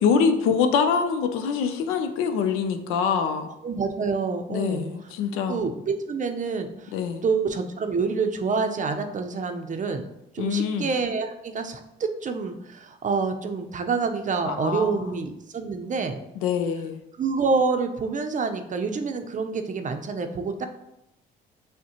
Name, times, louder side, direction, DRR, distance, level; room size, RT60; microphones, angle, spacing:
voice 1, 0.0-3.5 4.5-5.6 6.9-7.2 10.4-10.9 14.4-15.1 16.4-17.0, left 6 dB, 90° left, 7 dB, 0.5 m, -24 dB
voice 2, 3.6-4.8 5.5-6.9 7.2-10.0 10.3-16.2 17.2-20.7, right 4 dB, 40° right, 6 dB, 0.5 m, -27 dB
6.1 x 2.1 x 2.9 m, 0.85 s
cardioid pair, 80°, 21 cm